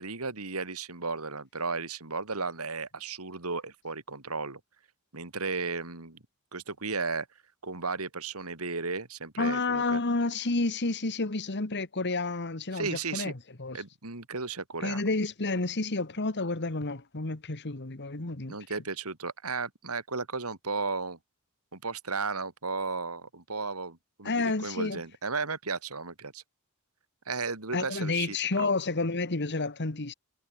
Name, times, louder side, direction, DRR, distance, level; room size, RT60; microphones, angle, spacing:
voice 1, 0.0-4.6 5.1-6.2 6.5-7.3 7.6-10.0 12.7-13.3 13.7-15.0 18.5-21.2 21.7-26.4 27.3-28.7, right 4 dB, 75° right, 3.1 m, -34 dB
voice 2, 9.4-13.3 13.6-13.8 14.8-18.6 24.2-25.0 27.7-30.1, left 3 dB, 50° left, 1.7 m, -30 dB
head